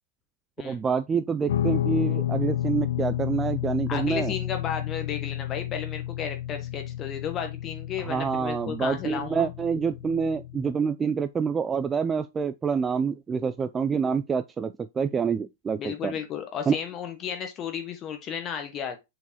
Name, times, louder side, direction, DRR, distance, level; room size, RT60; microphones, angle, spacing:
voice 1, 0.6-4.3 8.0-16.1 16.7-16.8, right 6 dB, 20° right, 0.4 m, -27 dB
Guitar, 1.5-10.8, left 11 dB, 65° left, 0.6 m, -31 dB
voice 2, 3.9-9.5 15.8-19.0, left 8 dB, 30° left, 1.3 m, -33 dB
6.7 x 4.6 x 3.0 m
hypercardioid pair, 105°, 0 cm